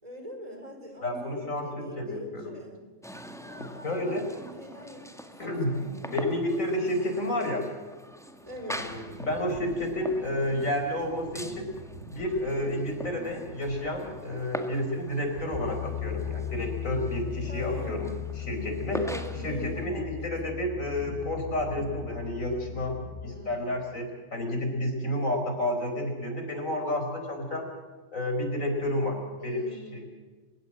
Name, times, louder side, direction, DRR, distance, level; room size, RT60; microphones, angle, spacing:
voice 1, 0.0-2.8 3.4-6.3 8.4-8.9 13.1-13.3 17.5-18.0 18.9-20.7 23.2-23.7 29.4-30.0, equal, 25° right, 3 dB, 4.7 m, -43 dB
voice 2, 1.0-2.5 3.6-4.2 5.4-5.8 6.1-7.7 8.7-11.7 12.1-18.1 18.4-19.0 19.4-27.6 28.1-30.0, left 1 dB, 60° left, 4 dB, 5.2 m, -30 dB
sound 1, 3.0-19.9, equal, ahead, 1.7 m, -43 dB
sound 2, 8.1-23.6, right 2 dB, 50° right, 7.9 m, -47 dB
Piano, 15.5-23.2, left 11 dB, 45° left, 7.5 m, -37 dB
29.0 x 16.0 x 7.5 m, 1.4 s
omnidirectional pair, 1.5 m